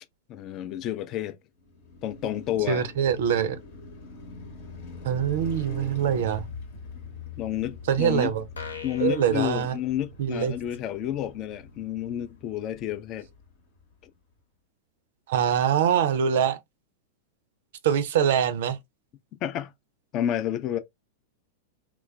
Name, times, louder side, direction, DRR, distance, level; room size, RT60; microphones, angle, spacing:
voice 1, 0.3-1.4 2.0-2.9 7.4-8.3 8.8-13.3 19.4-19.7 20.1-20.8, left 11 dB, 35° left, 0.4 m, -30 dB
Car passing by, 1.6-13.8, left 2 dB, 55° left, 0.9 m, -43 dB
voice 2, 2.7-3.6 5.0-6.5 7.9-8.4 9.0-9.8 10.2-10.5 15.3-16.6 17.8-18.8, right 8 dB, 55° right, 0.4 m, -24 dB
sound 1, 8.6-10.5, left 5 dB, 80° left, 0.6 m, -41 dB
3.1 x 2.2 x 2.2 m
figure-of-eight pair, 95°, 0 cm